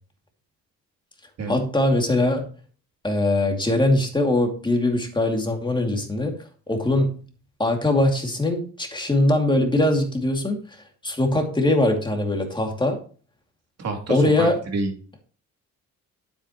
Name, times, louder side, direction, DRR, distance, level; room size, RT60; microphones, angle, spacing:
voice 1, 1.5-2.4 3.0-6.3 6.7-7.1 7.6-10.6 11.0-13.0 14.1-14.6, left 1 dB, 15° left, 3 dB, 2.5 m, -21 dB
voice 2, 13.8-14.9, right 3 dB, 60° right, 3 dB, 2.9 m, -28 dB
9.1 x 8.2 x 3.0 m, 0.40 s
cardioid pair, 90°, 30 cm